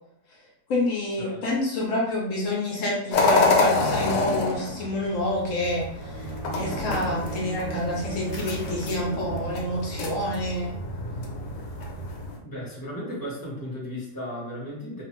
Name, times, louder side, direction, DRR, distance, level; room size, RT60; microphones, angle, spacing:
voice 1, 0.7-6.3 6.5-10.7, left 1 dB, 65° left, -3 dB, 0.9 m, -28 dB
sound 1, 3.1-12.4, left 3 dB, 85° left, 1.2 m, -27 dB
Bowed string instrument, 5.9-9.8, right 4 dB, 70° right, 1.0 m, -37 dB
voice 2, 12.4-15.0, equal, 20° left, -6 dB, 0.7 m, -35 dB
2.4 x 2.4 x 2.9 m, 0.73 s
omnidirectional pair, 1.8 m